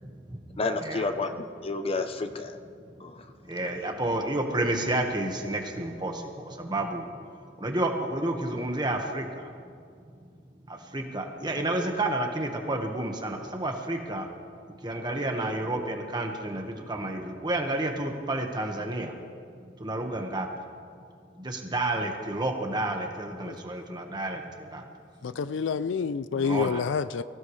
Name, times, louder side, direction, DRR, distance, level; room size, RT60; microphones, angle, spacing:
voice 1, 0.0-0.4 0.8-1.0 3.4-7.0 7.6-9.5 10.7-14.3 14.8-19.2 19.8-20.5 21.4-24.8 26.3-26.8, right 1 dB, 25° right, 1.4 m, -30 dB
voice 2, 0.6-2.6 3.0-3.3 3.6-3.7, left 3 dB, 30° left, 0.7 m, -31 dB
voice 3, 25.2-27.2, left 6 dB, 75° left, 0.4 m, -28 dB
24.0 x 16.0 x 3.2 m
head